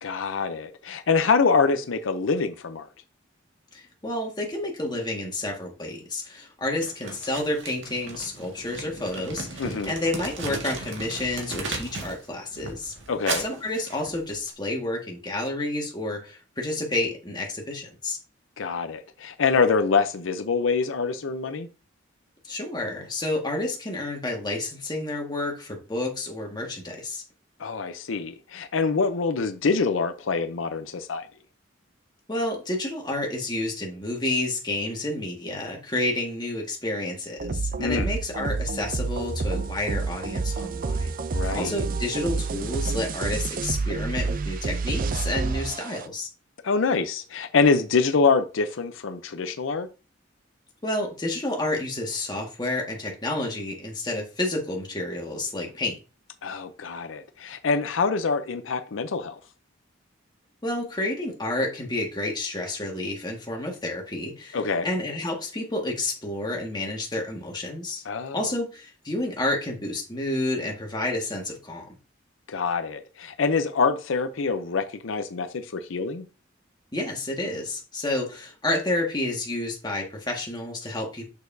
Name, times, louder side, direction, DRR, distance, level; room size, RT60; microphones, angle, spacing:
voice 1, 0.0-2.9 9.6-9.9 13.1-13.4 18.6-21.7 27.6-31.3 37.8-38.1 41.3-41.8 46.6-49.9 56.4-59.4 64.5-64.9 68.0-68.4 72.5-76.2, left 4 dB, 80° left, 0.6 m, -25 dB
voice 2, 3.7-12.9 13.4-18.2 22.4-27.2 32.3-41.1 41.5-46.3 50.8-56.0 60.6-68.0 68.3-71.9 76.9-81.3, left 2 dB, 20° left, 1.7 m, -30 dB
Crumpling crinkling, 6.8-12.2 12.5-14.5, right 3 dB, 65° right, 1.8 m, -36 dB
sound 1, 37.4-46.1, right 4 dB, 45° right, 0.5 m, -29 dB
6.7 x 6.5 x 2.7 m
head